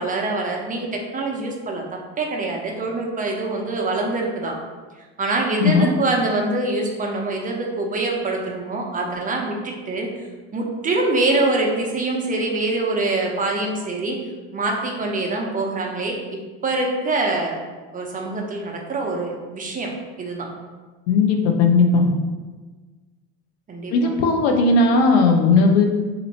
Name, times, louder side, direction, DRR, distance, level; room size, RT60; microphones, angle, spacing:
voice 1, 0.0-1.8 2.2-4.6 5.2-10.1 10.5-14.2 14.5-17.6 17.9-19.9 20.2-20.5 23.7-24.2, right 2 dB, 25° right, 0 dB, 0.7 m, -24 dB
voice 2, 21.1-22.1 23.9-25.9, left 4 dB, 90° left, 3 dB, 0.6 m, -16 dB
2.8 x 2.6 x 4.1 m, 1.3 s
supercardioid pair, 90°, 31 cm